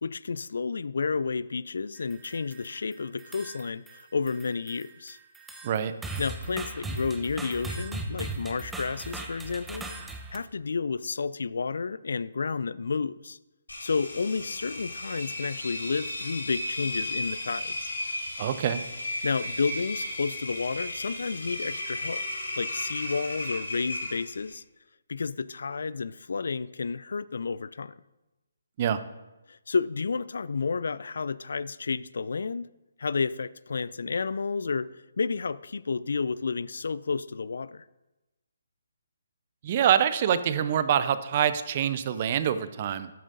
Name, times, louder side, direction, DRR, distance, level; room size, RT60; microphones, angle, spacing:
voice 1, 0.0-5.2 6.2-9.9 10.3-13.4 13.8-17.9 19.2-22.2 22.6-24.6 25.1-27.9 29.5-32.7 33.0-34.9 35.2-37.8, left 4 dB, 60° left, 18 dB, 0.3 m, -31 dB
sound 1, 2.0-2.8 3.2-4.0 4.3-10.4, right 2 dB, 5° right, 0.8 m, -38 dB
Engine, 13.7-24.5, left 1 dB, 75° left, 3.0 m, -35 dB
voice 2, 18.4-18.8 28.8-29.0 39.6-43.1, right 9 dB, 35° right, 13 dB, 0.7 m, -25 dB
13.5 x 12.0 x 2.6 m, 1.0 s
figure-of-eight pair, 140°, 0 cm